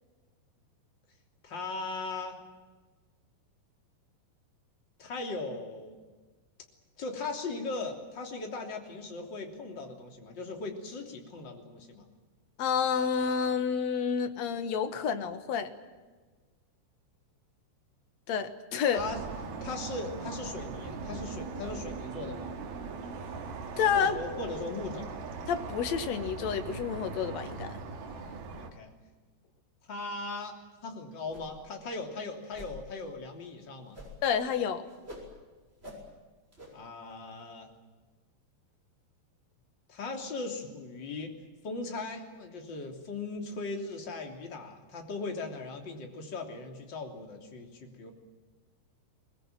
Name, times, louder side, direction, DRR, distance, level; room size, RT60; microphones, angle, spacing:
voice 1, 1.4-2.4 5.0-6.0 7.0-12.1 18.9-19.2 19.6-22.5 23.9-25.1 27.9-28.9 29.9-30.6 30.8-34.0 36.7-37.7 39.9-41.3 41.6-48.1, left 3 dB, 30° left, 2 dB, 3.3 m, -38 dB
voice 2, 12.6-15.7 18.3-19.0 23.8-24.2 25.5-27.8 34.2-34.8, left 7 dB, 60° left, 8 dB, 1.9 m, -29 dB
sound 1, 19.0-28.7, right 4 dB, 65° right, 3.9 m, -40 dB
sound 2, 31.3-31.7 32.0-32.1 32.5-32.8 33.9-34.3 34.6-35.3 35.8-36.0 36.5-36.7, left 1 dB, 15° right, 6.7 m, -46 dB
23.0 x 21.0 x 9.1 m, 1.3 s
omnidirectional pair, 4.9 m